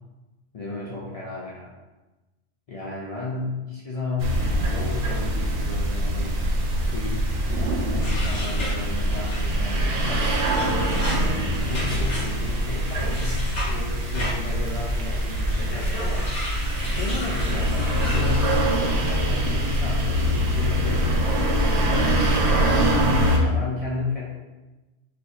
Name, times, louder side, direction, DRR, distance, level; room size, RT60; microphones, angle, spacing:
voice 1, 0.5-1.7 2.7-6.4 6.8-7.5 7.8-10.4 10.8-11.3 11.7-16.3 16.8-22.9 23.3-24.3, left 3 dB, 55° left, -5 dB, 0.4 m, -34 dB
sound 1, 4.2-23.4, equal, 90° right, 0.9 m, -23 dB
sound 2, 8.0-18.6, left 1 dB, 80° left, 1.3 m, -36 dB
4.1 x 2.6 x 2.3 m, 1.1 s
omnidirectional pair, 1.2 m